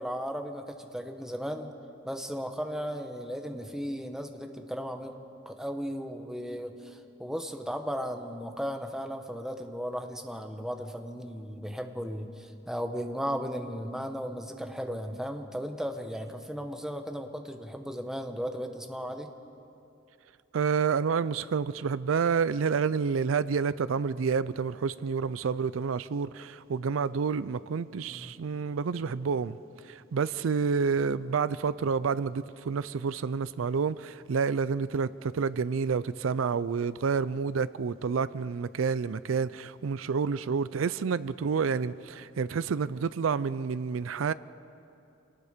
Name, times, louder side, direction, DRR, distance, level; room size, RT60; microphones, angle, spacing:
voice 1, 0.0-1.7 2.0-5.1 5.4-19.3 28.1-28.3, equal, 5° right, 1.1 m, -36 dB
voice 2, 20.5-29.6 29.8-44.3, right 5 dB, 90° right, 0.4 m, -29 dB
27.5 x 18.5 x 5.1 m
head